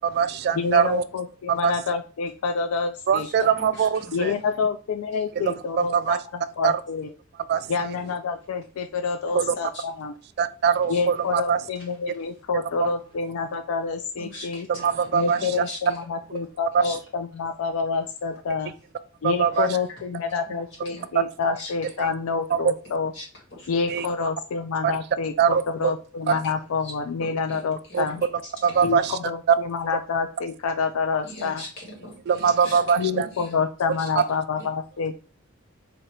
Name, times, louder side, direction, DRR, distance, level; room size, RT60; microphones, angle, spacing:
voice 1, 0.0-1.0 1.5-1.7 3.1-4.3 5.4-6.2 6.6-6.8 7.5-7.9 9.3-9.5 10.4-11.6 12.5-12.9 14.8-15.4 19.2-19.7 21.1-21.2 22.0-22.1 22.5-22.7 23.9-24.1 24.8-24.9 25.4-25.6 26.3-26.4 27.9-28.1 28.6-29.2 29.5-29.6 32.3-33.3, right 7 dB, 50° right, 13 dB, 0.3 m, -22 dB
voice 2, 0.5-3.5 4.1-7.1 7.7-10.1 10.9-14.7 15.1-18.7 19.2-23.1 23.7-28.2 28.8-31.6 33.0-35.1, left 5 dB, 90° left, 6 dB, 0.4 m, -28 dB
voice 3, 3.2-4.3 5.1-5.2 9.7-9.8 10.9-11.0 14.2-16.0 16.8-17.0 19.5-19.7 20.5-21.1 21.6-21.7 23.1-23.7 26.3-26.4 26.8-26.9 27.2-28.9 31.2-33.6 34.0-34.1 34.6-34.7, left 1 dB, 65° left, -2 dB, 1.9 m, -42 dB
4.0 x 2.8 x 3.2 m, 0.37 s
head